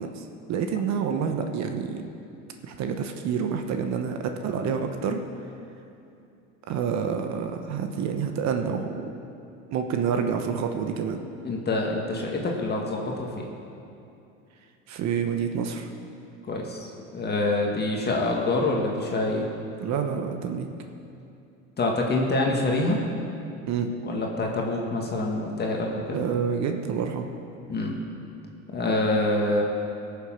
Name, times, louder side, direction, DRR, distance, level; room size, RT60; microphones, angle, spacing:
voice 1, 0.0-2.0 2.6-5.2 6.7-9.1 9.7-11.2 14.9-15.9 19.8-20.7 23.7-24.0 26.1-27.3, right 6 dB, 50° right, 5 dB, 1.0 m, -28 dB
voice 2, 11.4-13.4 16.5-19.5 21.8-23.0 24.0-26.2 27.7-28.0 28.7-29.6, left 2 dB, 30° left, -1 dB, 1.8 m, -26 dB
17.5 x 7.0 x 5.8 m, 2.7 s
supercardioid pair, 100°, 36 cm